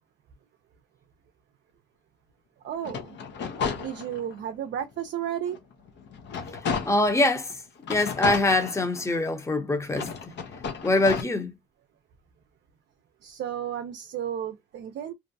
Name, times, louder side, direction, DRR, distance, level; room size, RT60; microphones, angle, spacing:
voice 1, 2.6-3.2 3.8-5.6 13.2-15.1, right 10 dB, 65° right, 0.5 m, -33 dB
sound 1, 2.8-4.4 4.9-5.0 5.5-7.2 7.8-9.3 9.9-11.2, left 6 dB, 65° left, 0.6 m, -33 dB
voice 2, 6.7-7.5 7.9-10.1 10.8-11.5, left 2 dB, 15° left, 0.7 m, -24 dB
2.6 x 2.1 x 2.6 m
cardioid pair, 90°, 20 cm